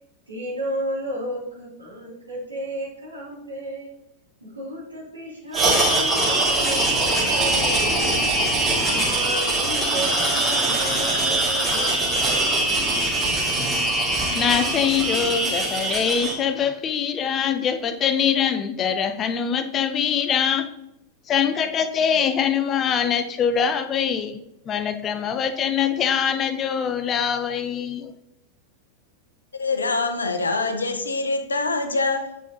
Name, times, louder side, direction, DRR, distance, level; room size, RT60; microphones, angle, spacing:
voice 1, 0.3-3.9 4.4-8.2 8.8-12.5, right 1 dB, 80° right, 2.7 m, -33 dB
sound 1, 5.5-16.3, right 2 dB, 15° right, 2.6 m, -22 dB
voice 2, 14.3-20.7 21.3-24.4 24.7-28.1, left 7 dB, 30° left, 0.5 m, -23 dB
voice 3, 29.6-32.4, left 3 dB, 75° left, 0.7 m, -24 dB
8.3 x 5.2 x 2.8 m
figure-of-eight pair, 90°, 0 cm